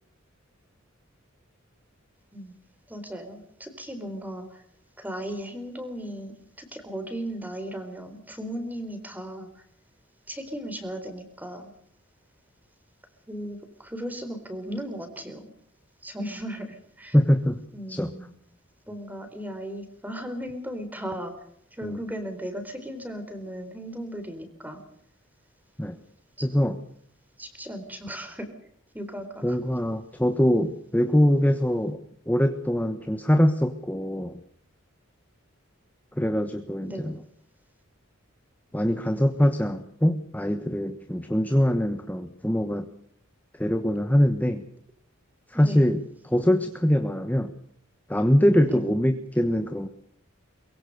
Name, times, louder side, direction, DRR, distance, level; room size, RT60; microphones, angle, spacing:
voice 1, 2.9-4.6 5.0-9.6 10.3-11.7 13.3-15.5 16.0-17.2 17.7-18.3 18.9-21.3 21.7-24.8 26.4-26.7 27.4-28.5 28.9-29.6 36.8-37.1 45.5-45.9 48.7-48.8, equal, 10° right, 8 dB, 4.1 m, -36 dB
voice 2, 17.1-17.6 17.9-18.1 21.8-22.0 25.8-26.0 26.4-26.8 29.4-32.0 32.3-34.4 36.2-37.1 38.7-42.9 43.6-44.6 45.5-47.5 48.1-49.9, equal, 10° left, 8 dB, 1.2 m, -23 dB
23.5 x 22.5 x 6.7 m, 0.66 s
head